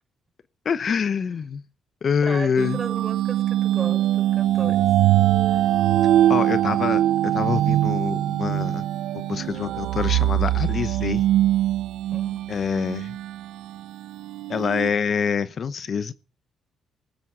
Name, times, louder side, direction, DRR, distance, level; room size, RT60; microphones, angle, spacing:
voice 1, 0.6-1.6 2.0-2.8 6.3-7.0 7.3-8.8 9.1-11.2 12.5-13.1 14.5-16.1, left 6 dB, 50° left, 0.9 m, -25 dB
voice 2, 2.2-4.9 5.5-5.7 12.1-12.4, right 4 dB, 30° right, 6.4 m, -36 dB
sound 1, 2.6-14.9, right 13 dB, 85° right, 0.8 m, -22 dB
18.5 x 9.7 x 5.6 m
cardioid pair, 90°, 0 cm